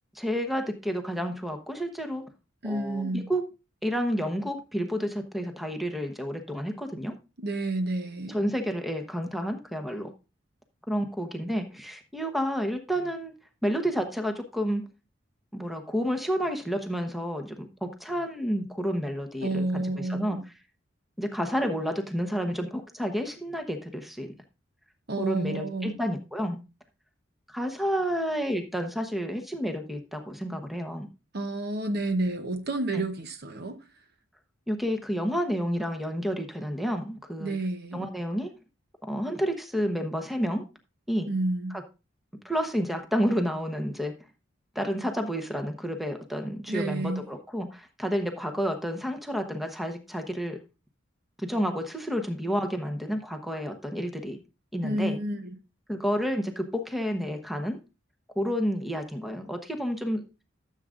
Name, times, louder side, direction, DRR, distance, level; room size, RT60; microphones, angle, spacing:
voice 1, 0.1-2.2 2.6-3.4 3.8-7.1 8.3-10.1 10.9-13.3 13.6-14.8 15.5-19.6 20.1-20.4 21.2-24.3 25.2-26.6 27.5-31.1 32.9-33.0 34.7-37.5 37.9-38.5 39.0-40.6 41.1-41.3 42.4-44.1 44.7-50.6 51.4-54.4 54.7-55.2 55.9-57.8 58.4-60.2, equal, ahead, 1.0 m, -30 dB
voice 2, 2.6-3.3 7.4-8.4 19.4-20.4 25.1-26.0 31.3-33.8 37.4-38.1 41.3-41.8 46.7-47.2 54.8-55.6, right 2 dB, 55° right, 1.0 m, -30 dB
13.5 x 7.5 x 2.5 m
head